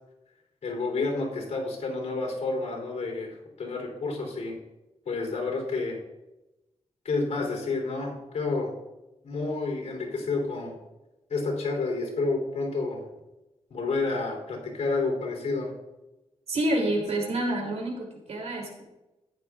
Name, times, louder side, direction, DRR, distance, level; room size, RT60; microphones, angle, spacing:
voice 1, 0.6-4.6 5.1-6.0 7.0-8.7 9.2-10.8 11.3-13.0 13.7-15.7, left 3 dB, 85° left, 0 dB, 3.5 m, -30 dB
voice 2, 16.5-18.8, right 1 dB, 70° right, 1 dB, 3.0 m, -28 dB
14.5 x 10.5 x 2.5 m, 0.98 s
wide cardioid pair, 110°, 12 cm